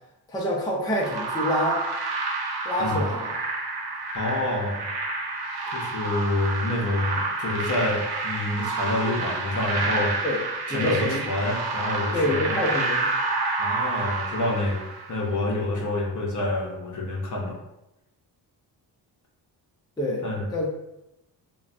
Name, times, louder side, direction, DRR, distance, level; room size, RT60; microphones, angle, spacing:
voice 1, 0.3-1.9 2.6-3.3 10.2-10.4 10.7-11.2 12.1-13.1 15.7-15.8 20.0-20.2 20.5-20.8, left 1 dB, 10° left, -3 dB, 0.6 m, -26 dB
sound 1, 1.0-15.3, right 3 dB, 65° right, 0.7 m, -29 dB
voice 2, 4.1-4.9 5.7-10.1 10.7-12.6 13.6-17.6 20.2-20.5, left 2 dB, 45° left, -1 dB, 0.7 m, -27 dB
3.0 x 2.2 x 2.5 m, 0.88 s
cardioid pair, 95°, 41 cm